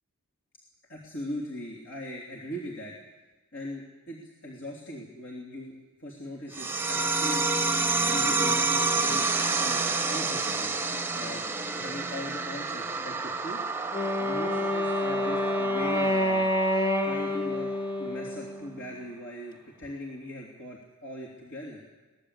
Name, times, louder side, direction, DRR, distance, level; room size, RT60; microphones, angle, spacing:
voice 1, 0.9-2.9 3.5-7.4 8.0-9.3 9.6-10.7 11.1-11.4 11.7-13.6 14.2-16.4 17.0-17.7 18.0-21.8, left 1 dB, 65° left, -1 dB, 3.2 m, -39 dB
sound 1, 6.5-17.5, right 3 dB, 10° right, 0.8 m, -29 dB
Wind instrument woodwind instrument, 13.9-19.0, left 1 dB, 20° left, 2.0 m, -28 dB
22.5 x 19.5 x 8.4 m, 1.2 s
head